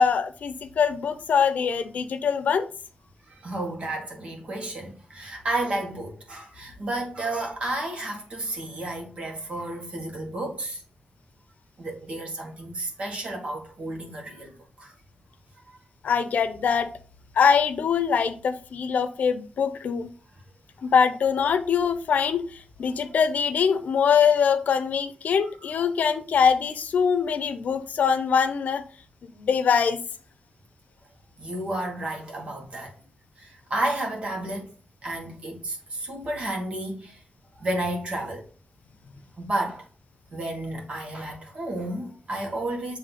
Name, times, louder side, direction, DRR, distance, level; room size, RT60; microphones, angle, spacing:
voice 1, 0.0-2.7 16.0-16.9 17.4-20.1 20.8-22.4 22.8-28.8 29.3-30.0, left 6 dB, 75° left, 0.7 m, -23 dB
voice 2, 3.3-10.8 11.8-14.9 23.1-23.2 31.4-32.9 33.4-34.7 35.0-37.2 37.6-38.5 39.4-39.9 40.3-43.0, right 1 dB, 45° right, 1.7 m, -32 dB
8.0 x 3.2 x 4.1 m
wide cardioid pair, 160°, 3 cm